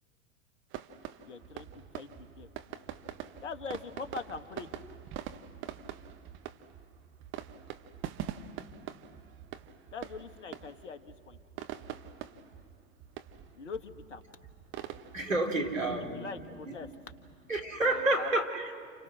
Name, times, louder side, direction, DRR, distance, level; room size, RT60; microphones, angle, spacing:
sound 1, 0.7-18.3, right 10 dB, 30° right, 1.4 m, -45 dB
voice 1, 1.2-2.5 3.4-4.7 9.9-11.4 13.5-14.2 16.1-16.9 17.8-18.4, left 4 dB, 65° left, 9 dB, 1.9 m, -42 dB
voice 2, 15.1-16.3 16.7-16.8 17.5-18.7, right 2 dB, 80° right, 3 dB, 3.7 m, -29 dB
30.0 x 29.5 x 6.3 m, 2.1 s
figure-of-eight pair, 95°, 38 cm